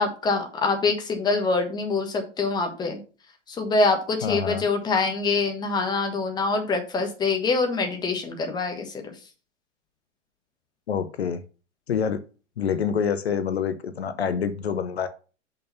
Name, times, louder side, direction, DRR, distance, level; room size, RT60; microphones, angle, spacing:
voice 1, 0.0-3.0 3.5-8.9, left 3 dB, 10° left, 4 dB, 1.2 m, -25 dB
voice 2, 4.2-4.7 10.9-11.4 11.9-12.2 12.6-15.1, left 7 dB, 55° left, 11 dB, 0.8 m, -26 dB
6.4 x 5.6 x 5.6 m, 0.36 s
figure-of-eight pair, 110°, 37 cm